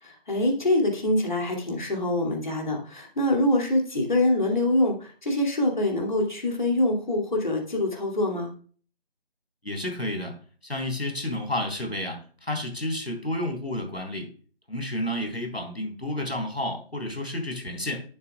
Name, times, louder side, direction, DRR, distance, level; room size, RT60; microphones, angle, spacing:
voice 1, 0.0-8.5, left 1 dB, 50° left, 1 dB, 2.5 m, -25 dB
voice 2, 9.6-10.3 10.6-14.3 14.7-18.0, left 1 dB, 90° left, 3 dB, 3.8 m, -31 dB
11.0 x 7.2 x 2.3 m, 0.41 s
figure-of-eight pair, 165°, 31 cm